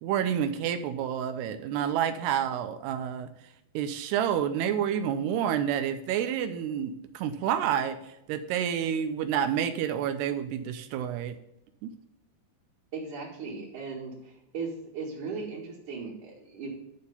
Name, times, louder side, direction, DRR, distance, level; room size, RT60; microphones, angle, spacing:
voice 1, 0.0-3.3 3.7-11.4 11.8-11.9, right 9 dB, 85° right, 9 dB, 2.6 m, -29 dB
voice 2, 12.9-14.1 14.5-16.7, right 4 dB, 55° right, -5 dB, 2.8 m, -37 dB
11.5 x 4.3 x 6.8 m, 0.86 s
omnidirectional pair, 4.9 m